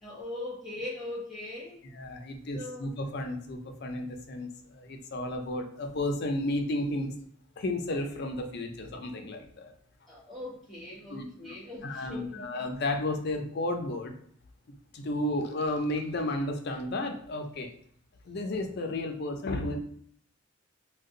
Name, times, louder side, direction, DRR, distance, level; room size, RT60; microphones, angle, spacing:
voice 1, 0.0-1.8 2.5-2.9 10.1-12.4, left 1 dB, ahead, -7 dB, 1.2 m, -40 dB
voice 2, 1.9-7.1 7.6-9.7 11.1-11.5 11.8-14.1 14.9-17.7 18.3-19.8, left 1 dB, 50° left, 4 dB, 0.5 m, -33 dB
2.5 x 2.2 x 3.7 m, 0.63 s
head